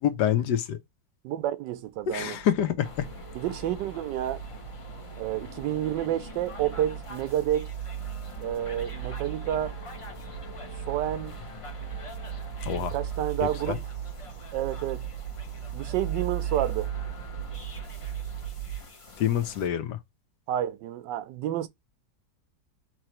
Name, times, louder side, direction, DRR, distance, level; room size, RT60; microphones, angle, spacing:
voice 1, 0.0-0.8 2.1-3.1 12.6-12.9 13.4-13.8 19.2-20.0, left 10 dB, 75° left, 1.3 m, -27 dB
voice 2, 1.2-2.4 3.4-4.4 5.2-7.7 8.4-9.8 10.9-11.4 12.8-13.8 14.5-15.1 15.7-16.9 20.5-21.7, right 12 dB, 85° right, 1.3 m, -29 dB
sound 1, 2.1-18.8, right 10 dB, 70° right, 1.0 m, -37 dB
sound 2, 2.8-19.7, left 3 dB, 30° left, 0.6 m, -45 dB
4.8 x 3.1 x 3.0 m
omnidirectional pair, 1.9 m